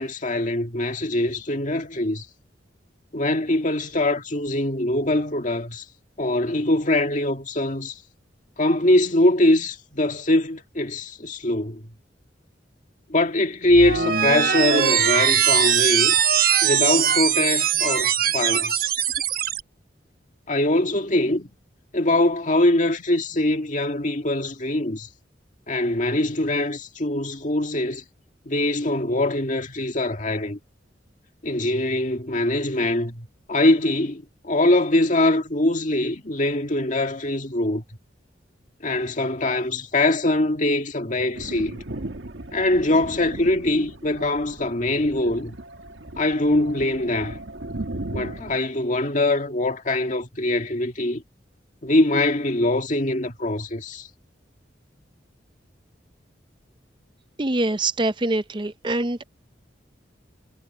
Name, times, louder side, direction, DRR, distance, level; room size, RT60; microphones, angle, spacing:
voice 1, 0.0-2.3 3.1-5.8 6.2-8.0 8.6-11.9 13.1-16.2 16.6-18.9 20.5-21.5 21.9-25.1 25.7-28.0 28.5-30.6 31.4-37.8 38.8-41.8 42.5-45.6 46.2-47.4 48.1-51.2 51.8-54.1, left 1 dB, 45° left, 2.0 m, -23 dB
sound 1, 13.7-19.6, right 9 dB, 50° right, 1.2 m, -21 dB
Thunder, 41.3-48.6, right 1 dB, 85° right, 1.7 m, -37 dB
voice 2, 57.4-59.2, right 2 dB, 25° right, 0.6 m, -24 dB
head